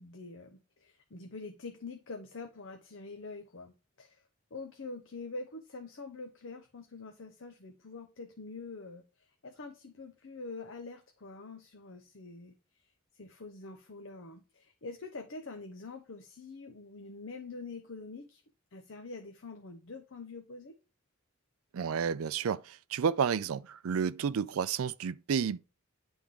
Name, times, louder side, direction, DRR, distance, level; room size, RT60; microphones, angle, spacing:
voice 1, 0.0-4.2 4.5-18.4 18.7-20.8, left 3 dB, 55° left, 0.7 m, -45 dB
voice 2, 21.7-25.6, right 7 dB, 75° right, 0.4 m, -31 dB
10.0 x 3.5 x 3.6 m
head